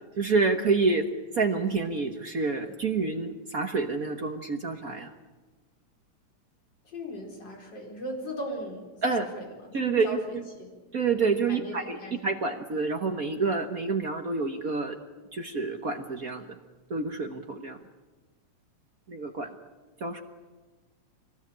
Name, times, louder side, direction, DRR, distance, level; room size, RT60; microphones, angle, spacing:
voice 1, 0.2-1.1 1.3-5.1 9.0-9.3 9.7-10.4 10.9-15.0 15.3-16.5 16.9-17.8 19.1-19.5 20.0-20.2, right 4 dB, 55° right, 4 dB, 1.0 m, -28 dB
voice 2, 6.9-10.7 11.5-12.2, equal, 35° left, 0 dB, 5.0 m, -38 dB
24.0 x 19.5 x 8.8 m, 1.3 s
omnidirectional pair, 3.3 m